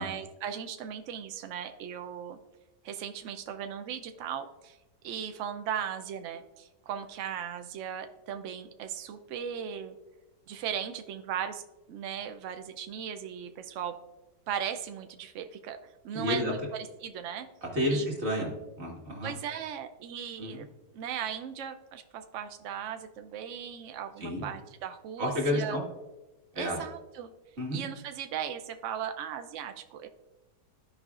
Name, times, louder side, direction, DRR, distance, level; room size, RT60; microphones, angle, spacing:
voice 1, 0.0-2.4 2.8-4.8 5.0-10.0 10.5-11.6 11.9-13.9 14.5-17.5 17.9-18.1 19.2-20.7 20.9-25.8 26.5-27.3 27.7-30.1, right 8 dB, 80° right, 7 dB, 0.7 m, -37 dB
voice 2, 16.1-16.5 17.7-18.5 18.8-19.3 20.4-20.6 24.2-24.4 25.2-25.8 26.6-26.8 27.6-27.8, left 1 dB, 40° right, -2 dB, 2.0 m, -30 dB
14.0 x 4.9 x 2.4 m, 1.0 s
omnidirectional pair, 1.8 m